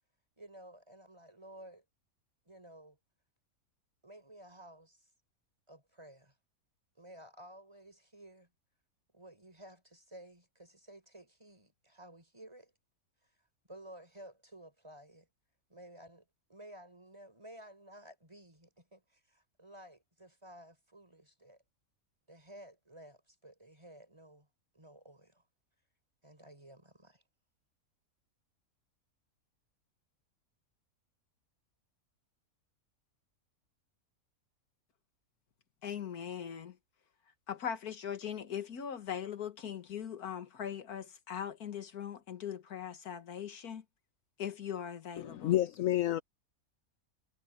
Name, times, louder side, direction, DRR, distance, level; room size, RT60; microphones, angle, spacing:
voice 1, 0.4-1.8 2.4-3.0 4.0-5.1 5.7-6.4 7.0-8.5 9.1-12.7 13.7-15.3 15.7-21.6 22.3-24.5 24.7-25.4 26.2-27.2, right 1 dB, 20° right, 4.7 m, -54 dB
voice 2, 35.8-36.7 37.5-43.8 44.4-45.5, left 8 dB, 85° left, 1.9 m, -40 dB
voice 3, 45.2-46.2, left 13 dB, 70° left, 1.0 m, -29 dB
omnidirectional pair, 1.5 m